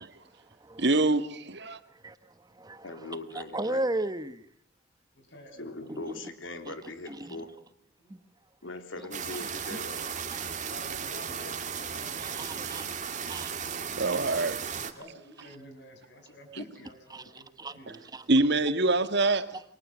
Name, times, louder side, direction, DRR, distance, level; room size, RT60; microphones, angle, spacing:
voice 1, 0.0-1.0 1.7-4.5 5.9-6.2 6.6-6.7 7.1-7.5 8.1-8.2 9.4-9.8 12.2-12.9 13.3-13.9 17.1-18.3 19.5-19.6, right 1 dB, 20° right, 1.3 m, -37 dB
voice 2, 0.8-1.8 14.0-14.6 18.3-19.5, right 2 dB, 60° right, 1.8 m, -25 dB
voice 3, 2.8-3.8 5.6-7.5 8.6-10.1 16.6-16.9, left 2 dB, 85° left, 3.4 m, -40 dB
voice 4, 5.1-6.0 8.0-8.2 9.0-9.7 10.7-12.3 15.0-16.5 16.7-18.0, left 1 dB, 60° left, 6.8 m, -50 dB
sound 1, 9.1-14.9, right 7 dB, 40° right, 2.3 m, -35 dB
28.5 x 23.0 x 7.5 m
head